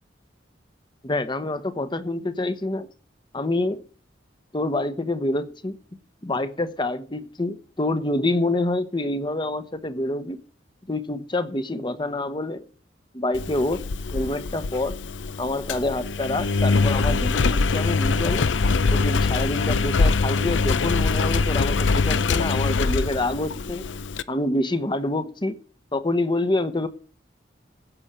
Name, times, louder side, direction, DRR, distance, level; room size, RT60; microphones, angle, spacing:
voice 1, 1.0-2.9 3.3-3.8 4.5-5.8 6.2-10.4 10.9-12.6 13.1-13.8 14.1-14.9 15.4-18.5 18.9-23.9 24.3-25.6 25.9-26.9, left 2 dB, 25° left, 0.9 m, -27 dB
Engine, 13.3-24.2, left 4 dB, 85° left, 0.6 m, -23 dB
16.0 x 6.3 x 6.7 m
head